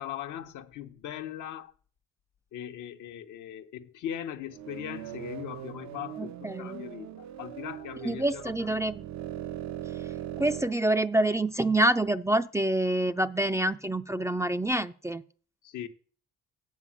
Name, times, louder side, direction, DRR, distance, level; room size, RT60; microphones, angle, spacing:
voice 1, 0.0-1.7 2.5-8.7 15.6-15.9, left 10 dB, 80° left, 0.9 m, -39 dB
sound 1, 4.5-10.7, right 12 dB, 65° right, 0.6 m, -40 dB
voice 2, 6.2-6.8 8.0-9.1 10.4-15.2, right 1 dB, 10° right, 0.4 m, -27 dB
8.3 x 4.9 x 7.4 m
cardioid pair, 90°, 30 cm